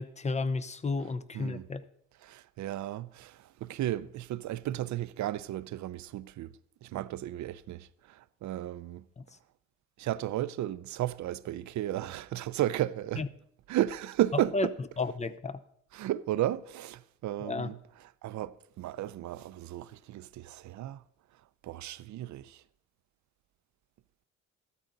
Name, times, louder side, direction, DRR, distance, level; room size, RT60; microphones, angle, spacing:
voice 1, 0.0-1.8 9.2-9.3 13.2-13.3 14.5-14.7 15.0-15.6 17.4-17.7, left 3 dB, 25° left, 0.7 m, -32 dB
voice 2, 1.3-1.7 2.2-6.5 6.8-9.0 10.0-13.3 13.7-14.7 15.9-21.0 21.6-22.6, right 13 dB, 70° right, 0.6 m, -34 dB
14.0 x 13.0 x 4.0 m
cardioid pair, 90°, 30 cm